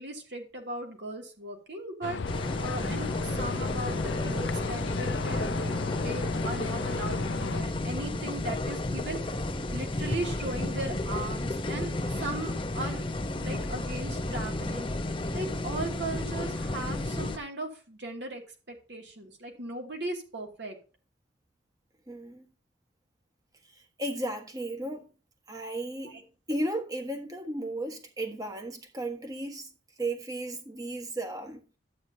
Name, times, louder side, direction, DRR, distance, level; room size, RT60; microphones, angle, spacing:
voice 1, 0.0-2.2 2.5-9.4 9.7-13.1 13.4-14.9 15.3-18.4 18.7-20.8 26.1-26.2, right 2 dB, 65° right, 2.6 m, -38 dB
sound 1, 2.0-7.6, left 5 dB, 75° left, 0.6 m, -35 dB
sound 2, 2.2-17.4, left 2 dB, 25° left, 0.9 m, -32 dB
voice 2, 22.1-22.4 24.0-25.0 25.5-26.2 26.5-29.7 30.0-31.6, right 1 dB, 20° right, 1.5 m, -34 dB
12.0 x 8.9 x 2.8 m
head